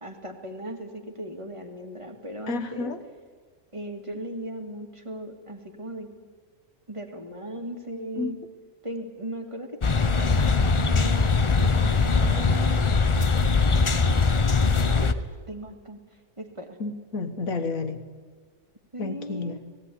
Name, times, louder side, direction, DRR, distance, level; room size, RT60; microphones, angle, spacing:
voice 1, 0.0-2.9 3.7-6.1 6.9-8.4 8.8-9.8 10.1-11.3 11.6-12.8 14.3-16.0 16.4-16.8 18.9-19.6, equal, 20° right, 4 dB, 2.0 m, -37 dB
voice 2, 2.5-3.0 8.2-8.4 16.8-18.0 19.0-19.6, left 3 dB, 65° left, 8 dB, 1.7 m, -31 dB
sound 1, 9.8-15.1, left 4 dB, 35° left, 0.5 m, -21 dB
17.0 x 17.0 x 9.9 m, 1.5 s
omnidirectional pair, 1.6 m